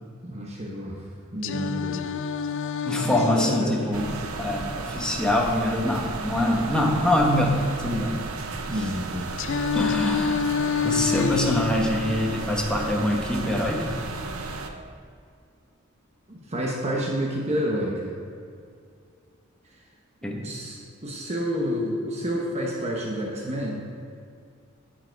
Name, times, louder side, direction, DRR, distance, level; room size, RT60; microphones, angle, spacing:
voice 1, 0.2-1.0 1.3-2.1 3.0-4.2 8.7-9.3 16.3-18.2 19.7-19.8 20.3-23.8, equal, 30° right, -2 dB, 1.1 m, -30 dB
Singing, 1.4-5.4 9.4-13.4, left 7 dB, 65° left, 0.4 m, -29 dB
voice 2, 2.8-8.2 8.7-8.8 9.7-10.5 10.8-14.0 16.9-17.0 20.2-20.5 21.6-21.8, left 1 dB, 5° left, 0 dB, 1.1 m, -25 dB
sound 1, 3.9-14.7, right 3 dB, 90° right, 0.8 m, -34 dB
10.5 x 7.6 x 4.6 m, 2.3 s
head